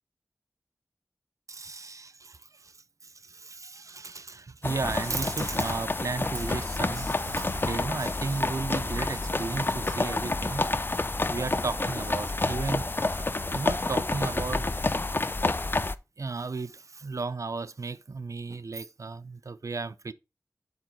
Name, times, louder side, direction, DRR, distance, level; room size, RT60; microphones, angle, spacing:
voice 1, 1.5-2.8 3.0-10.7 11.3-12.8 13.5-15.0 15.3-15.4 16.2-20.1, right 4 dB, 65° right, 0.5 m, -34 dB
sound 1, 4.3-5.5 5.8-9.4 9.8-12.2 12.4-14.5, right 2 dB, 45° right, 2.1 m, -45 dB
sound 2, 4.6-16.0, left 2 dB, 40° left, 0.5 m, -29 dB
7.4 x 4.8 x 4.5 m
wide cardioid pair, 65°, 6 cm